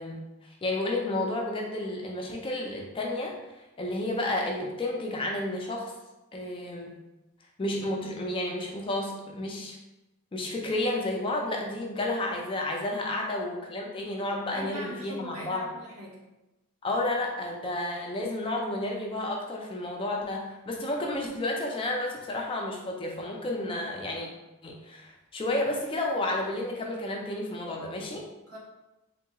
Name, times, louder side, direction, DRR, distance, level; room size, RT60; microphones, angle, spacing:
voice 1, 0.0-5.9 6.3-6.9 7.6-9.7 10.3-15.7 16.8-24.3 24.6-28.2, left 1 dB, 25° left, 0 dB, 0.3 m, -31 dB
voice 2, 14.5-16.2 28.5-28.6, left 1 dB, 70° right, -6 dB, 1.2 m, -41 dB
3.6 x 2.8 x 2.2 m, 0.99 s
head